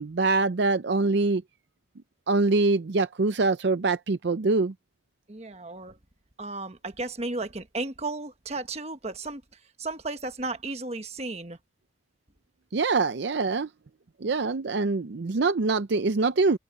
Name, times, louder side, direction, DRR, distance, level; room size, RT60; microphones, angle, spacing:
voice 1, 0.0-1.4 2.3-4.7 12.7-13.7 14.2-16.6, right 3 dB, 65° right, 0.6 m, -24 dB
voice 2, 5.3-6.0 6.4-9.4 9.8-11.6, right 2 dB, 35° right, 1.3 m, -34 dB
head